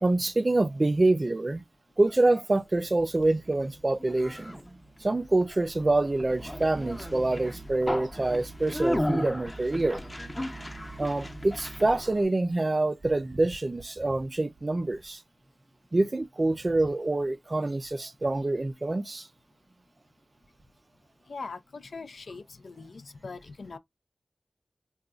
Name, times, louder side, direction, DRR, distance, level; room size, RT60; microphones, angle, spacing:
voice 1, 0.0-1.6 2.0-10.0 11.0-15.2 15.9-19.3, right 2 dB, 40° right, 0.3 m, -26 dB
Conversation, 2.8-12.2, equal, 20° left, 0.7 m, -35 dB
voice 2, 21.3-23.8, left 4 dB, 85° left, 0.4 m, -41 dB
3.8 x 2.3 x 2.3 m
wide cardioid pair, 55°, 0 cm